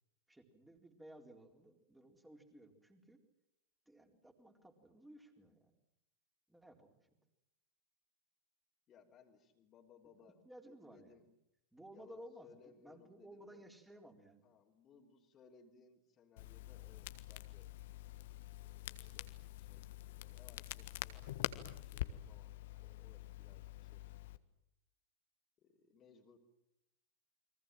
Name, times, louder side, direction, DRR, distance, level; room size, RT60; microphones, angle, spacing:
voice 1, 0.3-3.2 3.9-5.7 6.5-7.0 10.2-11.2 11.7-14.5, right 1 dB, 5° right, 4 dB, 4.1 m, -57 dB
voice 2, 8.9-11.3 11.9-13.7 14.4-17.7 18.6-24.1 25.6-26.4, left 6 dB, 30° left, -1 dB, 3.3 m, -65 dB
Crackle, 16.4-24.4, left 14 dB, 55° left, 1.4 m, -46 dB
30.0 x 23.5 x 7.7 m, 0.83 s
figure-of-eight pair, 90°, 0 cm